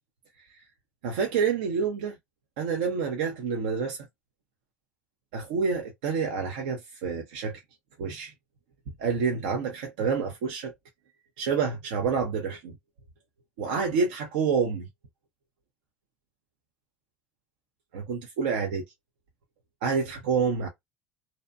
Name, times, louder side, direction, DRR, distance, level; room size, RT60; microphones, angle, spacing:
voice 1, 1.0-2.2 2.6-4.0 5.3-7.6 8.0-8.3 9.0-10.7 11.4-12.7 13.6-14.9 17.9-18.8 19.8-20.7, right 5 dB, 80° right, 0.5 m, -28 dB
2.6 x 2.1 x 2.5 m
hypercardioid pair, 70°, 5 cm